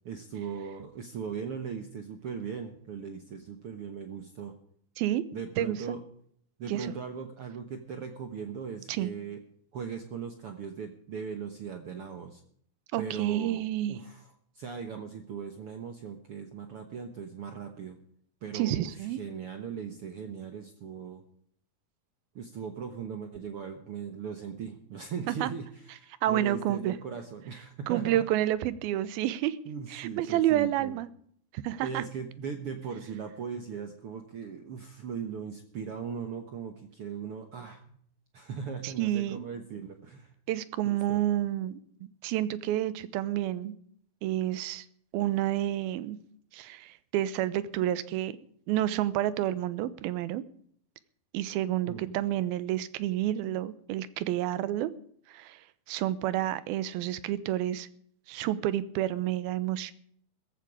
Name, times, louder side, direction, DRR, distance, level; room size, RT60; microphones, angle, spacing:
voice 1, 0.0-4.5 5.3-6.0 6.6-9.4 9.7-12.4 13.0-13.6 13.9-14.3 14.5-18.0 18.4-21.2 22.3-28.2 29.6-31.0 31.8-37.8 38.3-40.3 40.8-41.2 51.9-52.2, right 6 dB, 65° right, 6 dB, 1.4 m, -39 dB
voice 2, 5.6-6.0 6.7-6.9 8.9-9.1 12.9-14.0 18.5-19.2 25.3-25.5 26.2-26.9 27.9-29.6 29.9-31.1 31.5-32.0 38.8-39.5 40.5-41.8 42.2-43.7 44.2-44.9 45.1-46.2 46.5-48.3 48.7-50.4 51.3-54.9 55.3-55.6 55.9-57.9 58.3-59.9, right 13 dB, 85° right, 16 dB, 2.6 m, -29 dB
16.0 x 14.5 x 5.0 m, 0.63 s
omnidirectional pair, 4.3 m